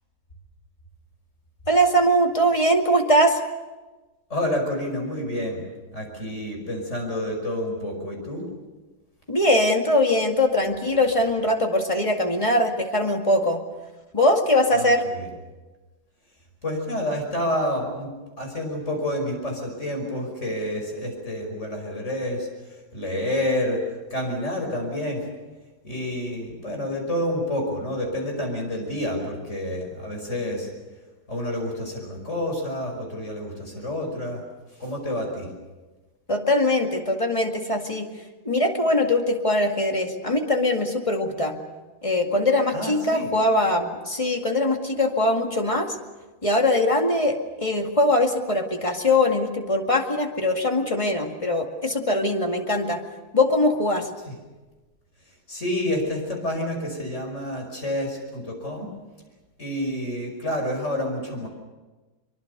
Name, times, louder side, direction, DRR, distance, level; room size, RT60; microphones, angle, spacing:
voice 1, 1.7-3.4 9.3-13.6 14.1-15.0 36.3-38.1 38.5-41.6 42.0-46.0 46.4-53.0 53.3-54.1, left 1 dB, 15° left, 3 dB, 2.1 m, -21 dB
voice 2, 4.3-5.6 5.9-8.5 14.7-15.3 16.6-18.1 18.4-25.3 25.8-30.7 31.3-34.4 34.8-35.5 42.7-43.3 54.3-54.4 55.5-58.9 59.6-61.5, left 1 dB, 35° left, 2 dB, 6.0 m, -29 dB
24.5 x 23.5 x 6.8 m, 1.2 s
omnidirectional pair, 2.2 m